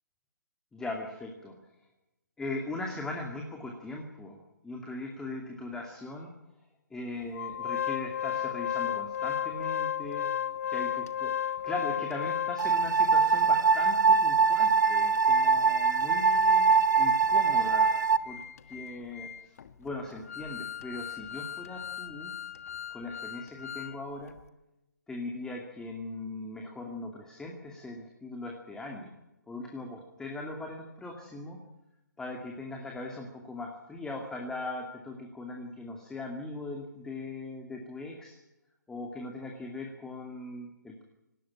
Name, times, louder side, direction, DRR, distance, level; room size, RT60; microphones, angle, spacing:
voice 1, 0.7-1.5 2.4-4.4 4.6-6.3 6.9-10.3 10.7-17.9 18.3-18.4 18.7-19.5 19.8-22.3 22.9-24.3 25.1-29.1 29.5-31.6 32.2-38.4 38.9-41.0, left 2 dB, 5° left, 1 dB, 2.4 m, -39 dB
Organ, 7.3-12.9 13.4-13.5 13.8-13.9 14.4-24.0 24.3-24.4, left 9 dB, 50° left, 1.4 m, -35 dB
sound 1, 12.6-18.2, right 5 dB, 75° right, 1.1 m, -23 dB
19.0 x 17.0 x 9.9 m, 0.94 s
figure-of-eight pair, 145°, 10 cm